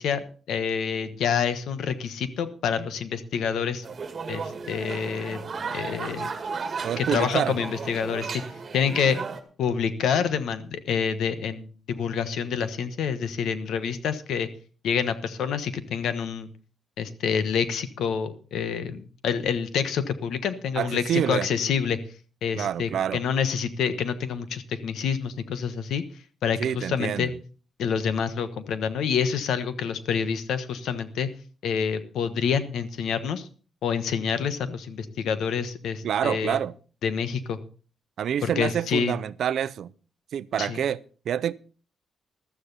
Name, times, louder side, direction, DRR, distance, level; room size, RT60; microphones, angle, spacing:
voice 1, 0.0-3.8 4.3-5.4 5.7-6.3 7.0-8.4 8.7-9.2 9.6-14.5 14.8-16.5 17.0-22.0 22.4-26.0 26.4-27.3 27.8-31.3 31.6-33.5 33.8-36.6 37.0-37.6 38.4-39.1 40.6-40.8, left 7 dB, 90° left, 1.2 m, -27 dB
sound 1, 3.8-9.4, right 5 dB, 35° right, 1.9 m, -34 dB
voice 2, 6.8-7.6 20.8-21.5 22.5-23.2 26.6-27.3 36.0-36.7 38.2-39.9 40.3-41.5, right 9 dB, 70° right, 0.5 m, -27 dB
15.0 x 12.5 x 4.1 m
cardioid pair, 135°, 0 cm